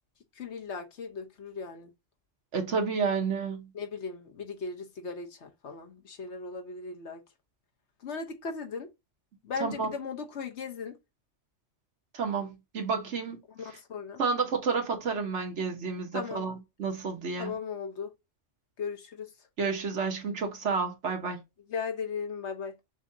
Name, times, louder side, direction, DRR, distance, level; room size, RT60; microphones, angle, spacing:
voice 1, 0.4-1.9 3.7-7.2 8.0-8.9 9.4-11.0 13.5-14.2 16.1-16.4 17.4-18.1 18.8-19.3 21.7-22.7, left 5 dB, 65° left, 1.2 m, -37 dB
voice 2, 2.5-3.7 9.6-9.9 12.1-13.4 14.2-17.5 19.6-21.4, right 5 dB, 70° right, 1.5 m, -30 dB
6.2 x 2.7 x 2.7 m
omnidirectional pair, 1.3 m